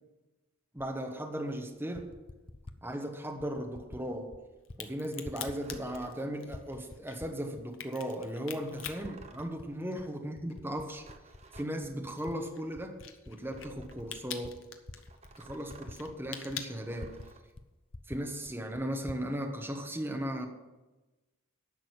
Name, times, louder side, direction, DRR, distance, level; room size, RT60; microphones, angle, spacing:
voice 1, 0.7-2.1 2.8-4.3 4.8-11.0 11.5-13.0 13.3-14.6 15.4-17.2 18.1-20.5, equal, 10° right, 3 dB, 1.1 m, -37 dB
Typing, 0.8-0.9 1.7-2.8 3.4-4.0 4.3-4.8 5.1-6.2 6.5-7.7 8.2-8.3 8.9-9.7 10.0-12.4 12.7-17.3 17.6-17.7 17.9-19.3, left 2 dB, 25° left, 0.5 m, -48 dB
Crack, 4.6-10.2 10.5-17.5, left 8 dB, 65° left, 1.0 m, -45 dB
sound 1, 5.5-6.2 8.5-9.6 10.7-11.7 13.4-14.2 15.1-16.0 16.8-17.4, right 3 dB, 30° right, 0.8 m, -55 dB
10.5 x 6.4 x 8.1 m, 1.1 s
head